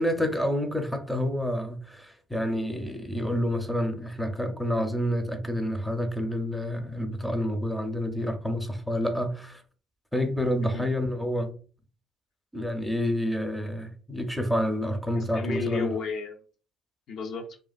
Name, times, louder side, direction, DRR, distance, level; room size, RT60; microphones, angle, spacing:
voice 1, 0.0-9.6 10.1-11.5 12.5-15.9, equal, ahead, 0.5 m, -28 dB
voice 2, 15.1-16.4 17.1-17.6, left 5 dB, 60° left, 0.4 m, -33 dB
2.4 x 2.4 x 2.3 m
hypercardioid pair, 65°, 0 cm